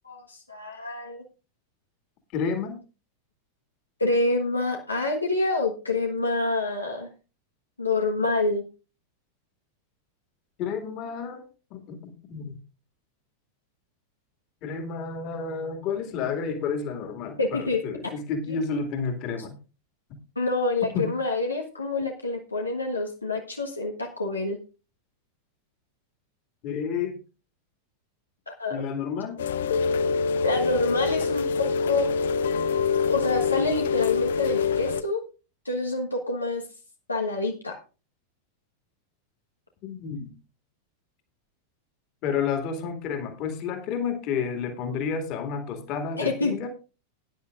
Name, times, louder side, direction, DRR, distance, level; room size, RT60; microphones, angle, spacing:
voice 1, 0.0-1.2 4.0-7.1 7.8-8.6 17.4-17.8 18.5-18.6 20.3-24.6 28.5-28.8 30.4-32.0 33.1-35.2 35.6-36.6 37.1-37.8 46.2-46.7, left 3 dB, 80° left, 1 dB, 1.3 m, -27 dB
voice 2, 2.3-2.8 10.6-11.4 11.7-12.6 14.6-19.6 20.9-21.1 26.6-27.2 28.7-29.4 39.8-40.3 42.2-46.7, left 6 dB, 40° left, 6 dB, 2.4 m, -30 dB
Rain, 29.4-35.0, left 5 dB, 60° left, 0.5 m, -25 dB
17.5 x 10.0 x 2.5 m, 0.32 s
figure-of-eight pair, 90°, 0 cm